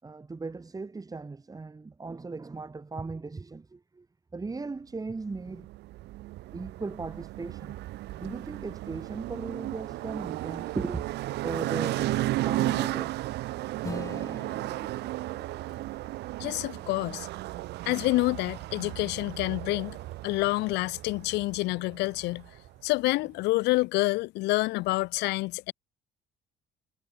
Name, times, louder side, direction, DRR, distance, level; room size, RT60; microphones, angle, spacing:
voice 1, 0.0-4.1 4.3-5.7 6.5-7.7 8.1-11.1 11.4-13.3, right 3 dB, 20° right, 7.6 m, -37 dB
sound 1, 5.3-22.8, right 17 dB, 80° right, 7.3 m, -34 dB
Acoustic guitar / Strum, 13.8-18.6, left 3 dB, 20° left, 5.6 m, -45 dB
voice 2, 16.4-17.3 17.9-20.0 20.2-22.4 22.8-25.7, left 21 dB, 90° left, 1.1 m, -27 dB
cardioid pair, 110°, 17 cm